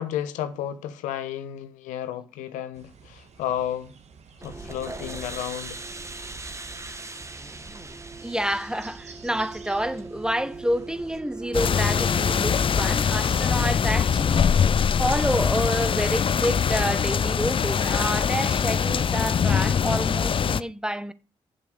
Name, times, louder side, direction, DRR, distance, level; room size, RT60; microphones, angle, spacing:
voice 1, 0.0-3.9 4.4-5.8, left 10 dB, 85° left, 0.8 m, -32 dB
sound 1, 2.7-11.1, right 5 dB, 60° right, 1.6 m, -50 dB
sound 2, 4.4-12.9, right 3 dB, 20° right, 1.2 m, -39 dB
voice 2, 8.2-21.1, equal, 5° right, 0.9 m, -28 dB
sound 3, 11.5-20.6, left 7 dB, 45° left, 0.5 m, -23 dB
7.4 x 6.6 x 7.7 m
supercardioid pair, 50°, 13 cm